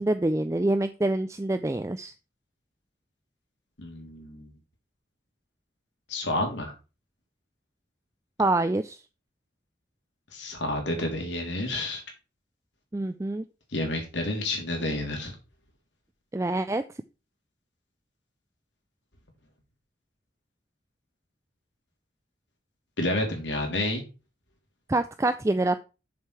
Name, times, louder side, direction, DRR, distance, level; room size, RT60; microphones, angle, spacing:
voice 1, 0.0-2.1 8.4-9.0 12.9-13.5 16.3-16.8 24.9-25.8, right 2 dB, 15° right, 9 dB, 0.3 m, -26 dB
voice 2, 3.8-4.5 6.1-6.7 10.3-12.0 13.7-15.4 23.0-24.0, left 1 dB, 90° left, 3 dB, 2.8 m, -30 dB
6.6 x 6.5 x 4.6 m, 0.30 s
head